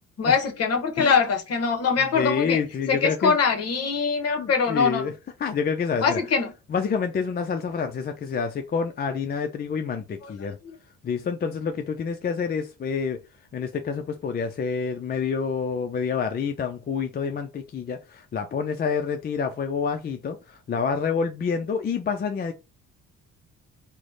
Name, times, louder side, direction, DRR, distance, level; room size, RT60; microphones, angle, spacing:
voice 1, 0.2-2.6 2.9-5.0 6.0-6.5 10.2-10.3, left 5 dB, 55° left, 0.9 m, -23 dB
voice 2, 2.0-3.4 4.4-5.1 5.4-6.2 6.7-10.6 11.0-13.2 13.5-22.5, left 6 dB, 35° left, 0.4 m, -28 dB
3.2 x 2.0 x 3.9 m
cardioid pair, 90°, 30 cm